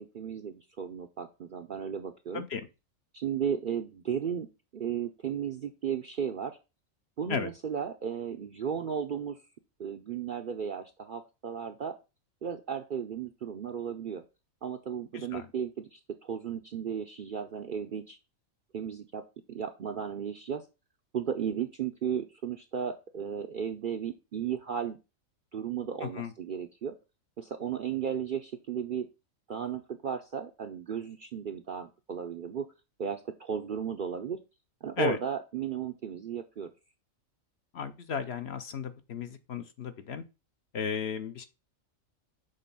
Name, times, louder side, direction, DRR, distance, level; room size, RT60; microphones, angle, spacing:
voice 1, 0.0-2.5 3.1-4.5 4.7-6.6 7.2-9.4 9.8-12.0 12.4-14.2 14.6-18.2 18.7-19.2 19.5-20.7 21.1-25.0 25.5-27.0 27.4-29.1 29.5-32.7 33.0-34.4 34.8-36.7, right 7 dB, 55° right, 0.6 m, -35 dB
voice 2, 2.3-2.7 7.3-7.5 15.1-15.5 26.0-26.3 35.0-35.2 37.7-40.2 40.7-41.5, left 6 dB, 60° left, 0.8 m, -34 dB
6.7 x 3.4 x 5.4 m
omnidirectional pair, 1.4 m